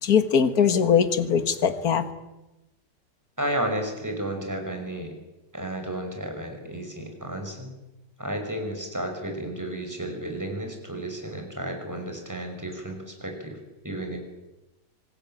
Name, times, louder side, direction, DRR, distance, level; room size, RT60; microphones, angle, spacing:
voice 1, 0.0-2.0, left 7 dB, 60° left, 10 dB, 2.1 m, -21 dB
voice 2, 3.4-5.2 5.5-7.7 8.2-13.6 13.8-14.2, right 1 dB, 10° right, 4 dB, 5.7 m, -32 dB
26.0 x 19.5 x 9.1 m, 0.99 s
omnidirectional pair, 1.8 m